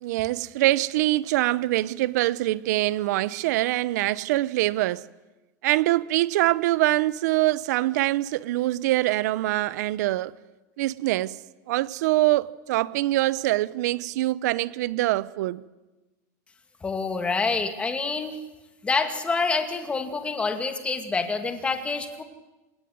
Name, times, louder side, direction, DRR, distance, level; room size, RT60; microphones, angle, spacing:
voice 1, 0.0-5.0 5.6-10.3 10.8-11.4 11.7-15.6, right 17 dB, 75° right, 0.8 m, -24 dB
voice 2, 16.8-18.4 18.8-22.2, left 4 dB, 10° left, 2.4 m, -27 dB
28.0 x 18.5 x 9.6 m
supercardioid pair, 155°, 9 cm